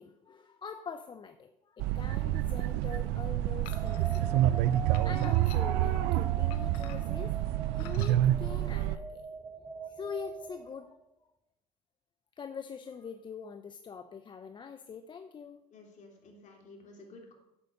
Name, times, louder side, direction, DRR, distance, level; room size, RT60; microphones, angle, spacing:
voice 1, 0.0-4.4 5.0-7.3 7.8-9.2 9.8-10.9 12.4-15.6, left 6 dB, 25° left, 9 dB, 0.6 m, -44 dB
sound 1, 1.8-9.0, right 14 dB, 70° right, 0.6 m, -28 dB
sound 2, 3.6-4.2 4.9-5.9 6.5-7.2 7.7-8.2, left 12 dB, 85° left, 0.9 m, -50 dB
sound 3, 3.7-11.0, right 3 dB, 10° right, 1.1 m, -43 dB
voice 2, 15.7-17.3, left 2 dB, 40° left, 1 dB, 3.0 m, -52 dB
8.3 x 8.3 x 6.5 m, 0.89 s
supercardioid pair, 110°, 18 cm